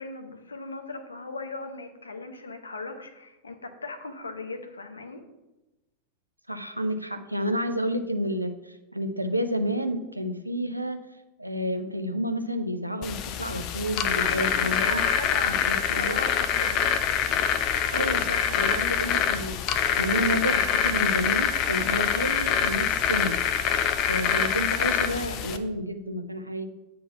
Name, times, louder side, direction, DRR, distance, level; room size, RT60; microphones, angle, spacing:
voice 1, 0.0-5.2 14.2-16.8, left 3 dB, 75° left, 7 dB, 0.9 m, -37 dB
voice 2, 6.5-11.0 11.4-15.0 15.4-16.2 17.9-23.8 24.1-26.7, equal, 90° right, 7 dB, 0.6 m, -30 dB
sound 1, 13.0-25.6, left 8 dB, 40° left, 0.5 m, -25 dB
8.5 x 3.9 x 5.6 m, 1.0 s
figure-of-eight pair, 90°, 0 cm